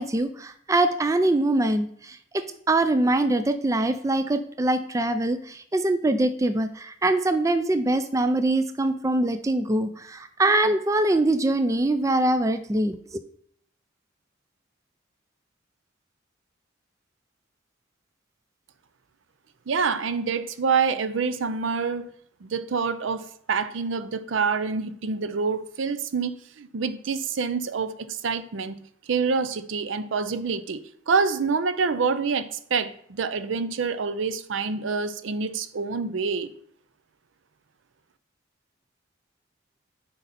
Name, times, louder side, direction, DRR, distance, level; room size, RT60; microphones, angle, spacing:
voice 1, 0.0-13.2, right 2 dB, 15° right, 10 dB, 0.3 m, -23 dB
voice 2, 19.7-22.1 22.4-36.5, right 5 dB, 70° right, 13 dB, 0.5 m, -27 dB
8.0 x 5.3 x 4.1 m, 0.65 s
head